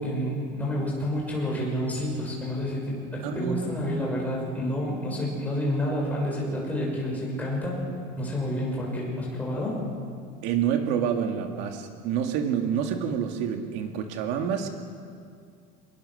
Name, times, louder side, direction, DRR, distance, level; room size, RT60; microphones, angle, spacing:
voice 1, 0.0-7.8 8.2-9.8, equal, 5° left, -3 dB, 6.6 m, -29 dB
voice 2, 3.2-3.8 10.4-14.7, right 8 dB, 65° right, 4 dB, 2.0 m, -28 dB
28.0 x 21.0 x 6.6 m, 2.3 s
cardioid pair, 170°, 20 cm